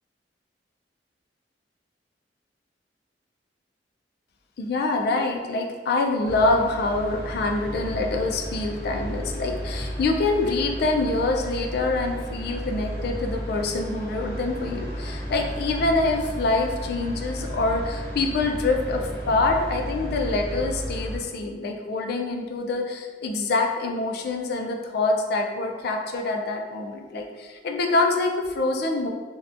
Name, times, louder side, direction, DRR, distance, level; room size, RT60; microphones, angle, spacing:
voice 1, 4.6-29.1, left 3 dB, 60° left, 2 dB, 0.3 m, -25 dB
sound 1, 6.2-21.2, equal, 15° left, 0.6 m, -33 dB
2.7 x 2.1 x 2.4 m, 1.5 s
head